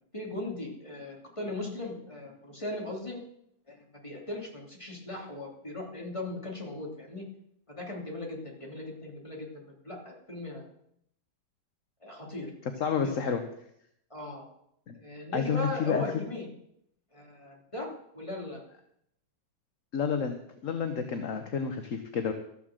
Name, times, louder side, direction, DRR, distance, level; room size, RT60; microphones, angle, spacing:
voice 1, 0.1-3.2 3.7-7.3 7.7-10.7 12.0-12.5 13.0-13.3 14.1-14.5 15.0-16.5 17.1-18.6, left 2 dB, 15° left, -1 dB, 3.2 m, -38 dB
voice 2, 12.8-13.4 14.9-15.0 15.3-16.0 19.9-22.3, left 6 dB, 50° left, 7 dB, 1.2 m, -30 dB
13.5 x 7.5 x 7.5 m, 0.72 s
omnidirectional pair, 2.1 m